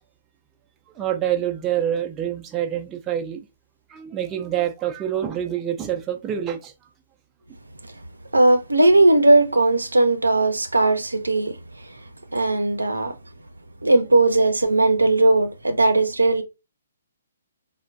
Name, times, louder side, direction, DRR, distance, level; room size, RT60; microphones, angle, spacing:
voice 1, 1.0-3.5 3.9-6.7, right 10 dB, 15° right, 0.4 m, -26 dB
voice 2, 8.3-11.6 12.3-13.1 13.8-16.4, right 2 dB, 80° right, 0.5 m, -18 dB
4.4 x 2.1 x 2.3 m
figure-of-eight pair, 130°, 0 cm